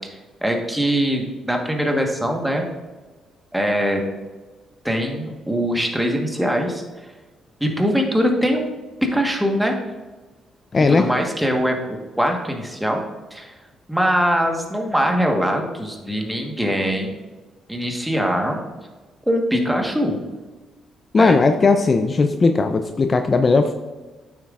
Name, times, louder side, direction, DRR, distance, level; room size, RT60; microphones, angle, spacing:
voice 1, 0.4-2.7 3.5-4.0 4.8-6.8 7.6-8.7 9.1-9.7 10.9-13.0 13.3-13.5 13.9-17.2 17.7-18.6 19.3-20.2 21.2-21.4, equal, 5° right, 2 dB, 1.3 m, -22 dB
voice 2, 10.7-11.1 21.1-23.7, left 3 dB, 35° left, 7 dB, 0.4 m, -17 dB
8.9 x 7.2 x 2.5 m, 1.3 s
cardioid pair, 90°, 0 cm